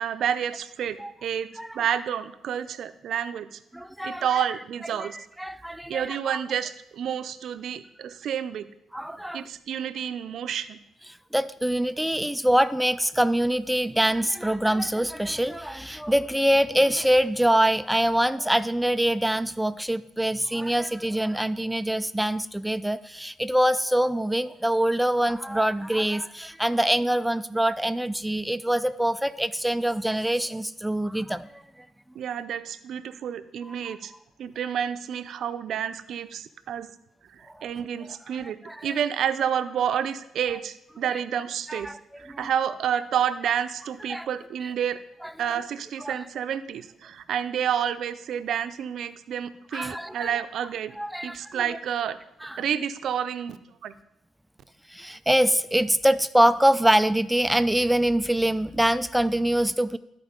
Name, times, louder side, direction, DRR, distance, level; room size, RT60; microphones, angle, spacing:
voice 1, 0.0-3.6 4.0-5.2 5.9-8.7 9.3-10.8 32.1-34.1 34.4-36.9 37.3-45.0 45.4-50.9 51.2-52.2 52.6-53.6 53.8-53.9, right 9 dB, 70° right, 11 dB, 0.5 m, -29 dB
voice 2, 3.7-4.4 5.0-6.4 8.9-9.5 11.3-31.6 33.7-34.0 37.6-37.7 38.3-39.0 41.1-41.2 41.7-42.5 44.1-44.3 45.2-45.3 46.0-46.2 49.7-50.3 51.0-51.8 52.4-52.6 54.9-60.0, right 1 dB, 5° right, 13 dB, 0.3 m, -24 dB
13.0 x 4.5 x 5.1 m, 0.83 s
cardioid pair, 90°, 0 cm